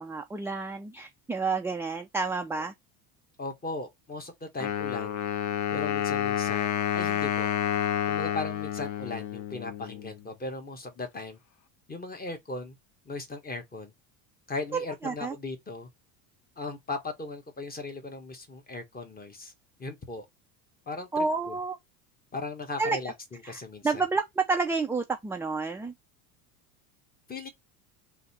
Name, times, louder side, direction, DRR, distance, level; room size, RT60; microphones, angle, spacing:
voice 1, 0.0-2.7 14.7-15.3 21.1-21.8 22.8-23.0 23.4-23.5 23.8-25.9, right 4 dB, 5° right, 0.5 m, -29 dB
voice 2, 3.4-5.2 5.7-7.5 8.1-11.4 11.9-12.8 13.0-13.9 14.5-15.9 16.6-19.5 19.8-20.2 20.9-21.6 22.3-24.0 27.3-27.5, left 3 dB, 20° left, 1.5 m, -38 dB
Wind instrument woodwind instrument, 4.6-10.2, left 10 dB, 45° left, 0.6 m, -29 dB
3.9 x 2.9 x 4.1 m
supercardioid pair, 100°, 41 cm